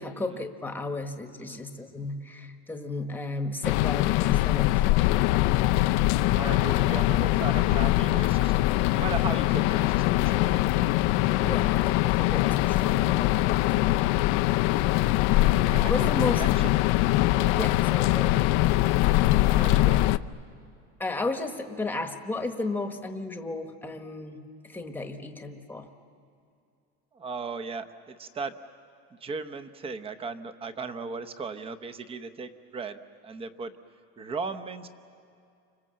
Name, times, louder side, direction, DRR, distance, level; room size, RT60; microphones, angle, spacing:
voice 1, 0.0-4.9 11.4-14.1 15.9-16.4 17.6-18.4 21.0-25.9, left 2 dB, 5° left, 6 dB, 1.2 m, -34 dB
sound 1, 3.6-20.2, left 17 dB, 65° left, 0.6 m, -23 dB
voice 2, 6.3-8.5 8.9-10.9 15.6-16.1 16.4-16.5 17.4-17.7 19.5-20.0 27.1-28.5 29.2-33.7 34.2-34.9, right 4 dB, 15° right, 11 dB, 0.8 m, -37 dB
29.5 x 26.0 x 7.6 m, 2.4 s
cardioid pair, 165°, 32 cm